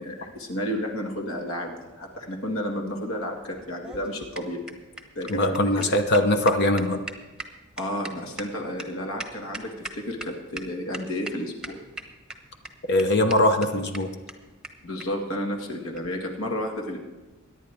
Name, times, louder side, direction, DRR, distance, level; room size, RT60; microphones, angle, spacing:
voice 1, 0.0-4.6 5.2-5.9 7.8-11.8 14.8-17.0, equal, 70° left, 1 dB, 2.1 m, -32 dB
sound 1, 3.6-10.3 10.6-10.7 10.9-11.3 11.6-12.3 12.6-12.7 13.0-13.1 13.3-13.4 13.6-13.7 13.9-14.0 14.3-14.4 14.6-14.7 15.0-15.1 15.9-16.1, right 2 dB, 5° right, 1.0 m, -38 dB
voice 2, 5.3-7.0 12.9-14.1, left 1 dB, 50° left, 6 dB, 0.9 m, -21 dB
23.0 x 10.0 x 3.6 m, 1.2 s
head